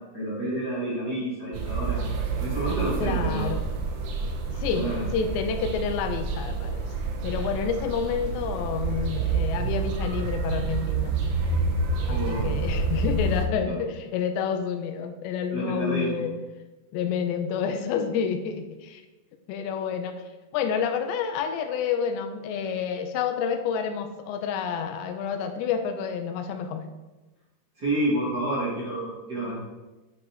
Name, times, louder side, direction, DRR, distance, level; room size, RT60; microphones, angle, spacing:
voice 1, 0.1-2.0 2.4-3.4 4.7-5.0 12.1-12.5 13.7-13.8 15.5-16.2 27.8-29.5, right 1 dB, 30° right, -9 dB, 2.4 m, -29 dB
sound 1, 1.5-13.5, right 4 dB, 85° right, 3.1 m, -28 dB
voice 2, 3.0-3.7 4.5-6.9 7.2-11.2 12.1-16.3 16.9-19.0 19.5-20.2 20.5-26.9, left 7 dB, 85° left, 7 dB, 2.8 m, -29 dB
9.4 x 5.1 x 4.7 m, 1.1 s
omnidirectional pair, 5.0 m